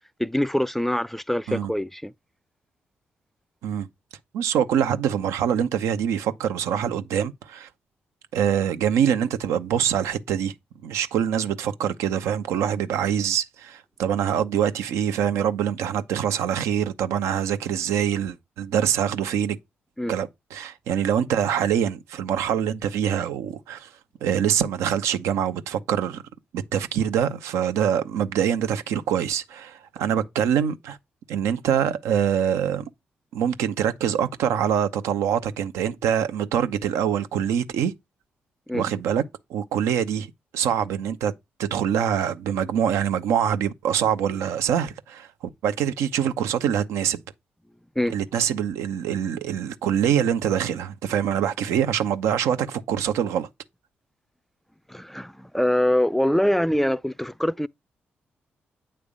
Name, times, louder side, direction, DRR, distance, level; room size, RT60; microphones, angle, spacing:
voice 1, 0.2-2.1 20.0-20.1 38.7-38.8 48.0-48.2 54.9-57.7, left 1 dB, 5° left, 0.4 m, -24 dB
voice 2, 4.3-7.7 8.3-10.5 10.8-19.6 20.1-23.9 24.2-26.2 26.5-31.0 31.3-32.8 33.3-37.9 38.7-39.2 39.5-41.3 41.6-45.3 45.6-47.2 48.1-53.5, right 9 dB, 80° right, 0.7 m, -24 dB
8.7 x 3.4 x 5.2 m
hypercardioid pair, 45°, 5 cm